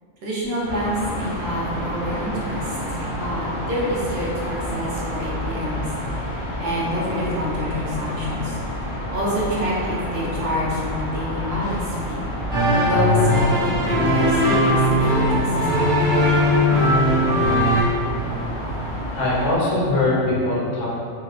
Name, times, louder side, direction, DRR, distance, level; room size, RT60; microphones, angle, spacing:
voice 1, 0.2-5.9 6.1-8.6 9.1-12.2 12.8-16.2, equal, 60° right, -6 dB, 0.8 m, -27 dB
sound 1, 0.6-19.6, equal, 50° left, 0.3 m, -29 dB
sound 2, 12.5-17.8, left 1 dB, 80° right, 1.1 m, -19 dB
voice 2, 19.1-20.9, left 2 dB, 80° left, -6 dB, 1.0 m, -21 dB
2.8 x 2.0 x 2.4 m, 2.4 s
omnidirectional pair, 1.3 m